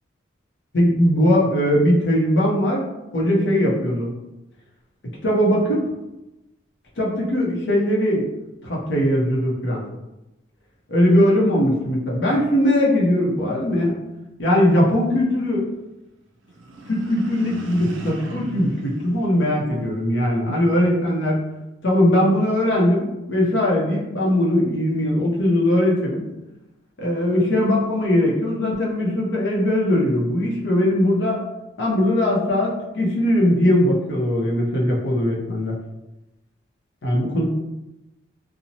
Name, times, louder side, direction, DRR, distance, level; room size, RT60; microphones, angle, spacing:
voice 1, 0.7-2.8 3.1-4.1 5.2-5.8 7.0-8.3 8.6-9.8 10.9-14.0 14.4-15.7 16.9-21.4 21.8-26.3 27.0-31.4 31.8-35.7 37.0-37.5, left 1 dB, 65° left, -3 dB, 0.6 m, -20 dB
sound 1, 16.4-20.0, right 1 dB, 75° right, 0.4 m, -37 dB
2.8 x 2.0 x 2.7 m, 0.98 s
head